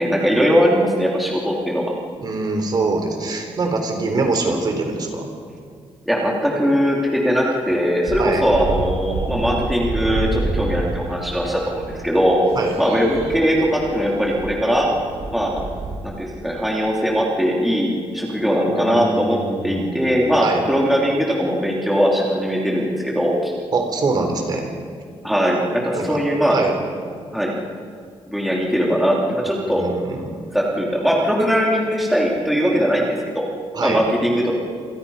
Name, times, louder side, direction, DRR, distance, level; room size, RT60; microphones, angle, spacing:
voice 1, 0.0-1.9 6.1-12.4 12.8-14.9 15.3-15.6 16.0-19.4 19.6-23.5 25.2-26.6 27.3-27.5 28.3-29.8 30.5-33.4 33.8-34.6, equal, ahead, -3 dB, 3.0 m, -20 dB
voice 2, 2.2-5.3 8.2-8.4 12.5-12.7 18.7-20.7 23.7-24.7 25.9-26.2 26.5-26.8 29.6-30.4 33.7-34.0, right 3 dB, 40° right, 4 dB, 3.9 m, -24 dB
sound 1, 8.1-16.0, right 2 dB, 75° right, 7.6 m, -29 dB
28.0 x 27.5 x 5.6 m, 2.1 s
wide cardioid pair, 175°, 11 cm